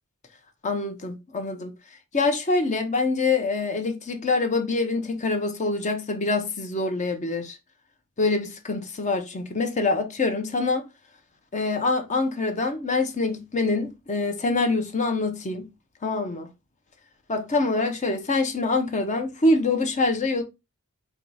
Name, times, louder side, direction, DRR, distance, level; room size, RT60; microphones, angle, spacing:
voice 1, 0.6-1.7 2.1-7.6 8.2-10.8 11.5-15.6 16.0-16.5 17.3-20.4, left 3 dB, 35° left, 0.6 m, -25 dB
4.5 x 2.3 x 3.9 m
head